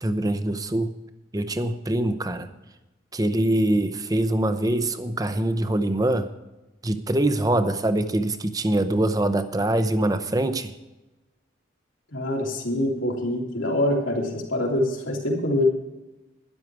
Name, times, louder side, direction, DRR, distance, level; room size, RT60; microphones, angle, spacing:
voice 1, 0.0-0.9 1.3-2.5 3.1-6.3 6.8-10.7, right 1 dB, 20° right, 10 dB, 0.7 m, -24 dB
voice 2, 12.1-15.6, left 1 dB, 85° left, -1 dB, 3.2 m, -25 dB
12.5 x 11.0 x 4.7 m, 1.0 s
head